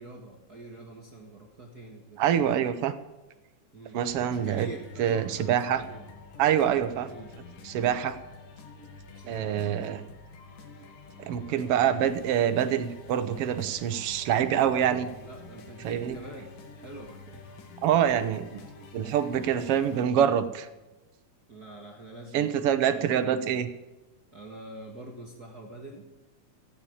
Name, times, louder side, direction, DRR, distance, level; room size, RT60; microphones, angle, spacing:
voice 1, 0.0-2.6 3.7-6.0 7.0-7.3 9.1-9.7 14.7-17.5 21.5-23.6 24.3-26.1, right 2 dB, 40° right, 0 dB, 1.6 m, -45 dB
voice 2, 2.2-2.9 3.9-4.7 5.0-5.8 6.4-7.1 7.6-8.2 9.3-10.0 11.2-15.1 15.8-16.1 17.8-18.6 18.9-20.7 22.3-23.7, right 9 dB, 75° right, 10 dB, 1.3 m, -25 dB
sound 1, 4.1-20.0, left 3 dB, 80° left, 3.4 m, -48 dB
15.0 x 8.6 x 8.6 m, 1.1 s
omnidirectional pair, 3.8 m